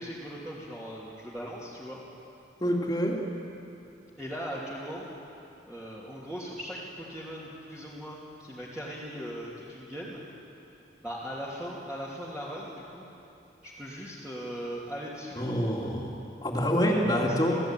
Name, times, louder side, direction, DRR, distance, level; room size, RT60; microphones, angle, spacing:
voice 1, 0.0-2.0 4.2-5.1 5.7-10.2 11.0-13.0 13.6-15.4 16.8-17.6, equal, 5° right, -9 dB, 3.0 m, -39 dB
voice 2, 2.6-3.2 15.4-17.6, equal, 20° left, -1 dB, 2.9 m, -27 dB
29.0 x 16.5 x 9.2 m, 2.8 s
head